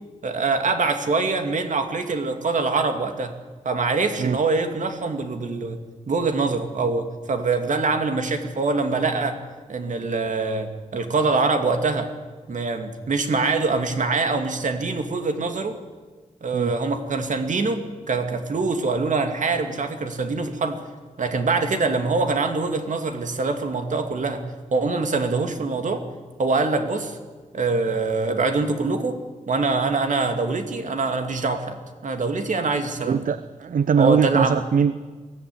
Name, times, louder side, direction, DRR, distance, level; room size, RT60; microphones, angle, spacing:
voice 1, 0.2-3.3 3.6-5.8 6.1-9.4 9.7-12.1 12.5-15.8 16.4-20.8 21.2-24.4 24.7-26.0 26.4-27.2 27.5-29.2 29.5-33.2 34.0-34.6, right 3 dB, 65° right, 6 dB, 2.4 m, -24 dB
voice 2, 33.0-34.9, right 7 dB, 80° right, 14 dB, 0.7 m, -21 dB
22.5 x 15.5 x 9.7 m, 1.4 s
wide cardioid pair, 150°, 14 cm